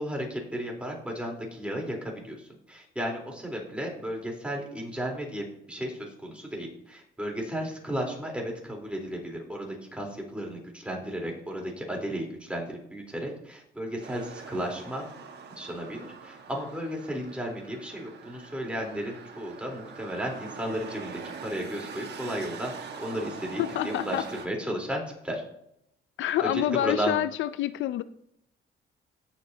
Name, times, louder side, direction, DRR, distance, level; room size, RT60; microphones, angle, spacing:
voice 1, 0.0-15.0 15.5-25.4 26.4-27.2, equal, 5° right, 0 dB, 3.6 m, -34 dB
sound 1, 14.0-24.5, right 5 dB, 60° right, 1.5 m, -43 dB
voice 2, 23.6-24.2 26.2-28.0, left 12 dB, 75° left, 14 dB, 0.5 m, -27 dB
17.0 x 7.2 x 2.8 m, 0.76 s
cardioid pair, 90°, 20 cm